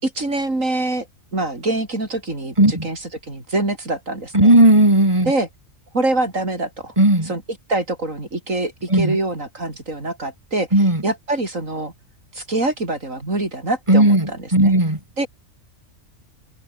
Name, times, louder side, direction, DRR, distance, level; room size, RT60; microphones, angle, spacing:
voice 1, 0.0-1.1 1.3-4.6 5.2-5.5 5.9-6.9 7.2-7.4 7.7-10.7 11.0-11.9 12.3-14.7 15.2-15.3, right 2 dB, 70° right, 5.8 m, -25 dB
voice 2, 4.3-5.3 7.0-7.3 8.9-9.2 10.7-11.0 13.9-15.0, right 1 dB, 20° right, 4.4 m, -15 dB
omnidirectional pair, 1.4 m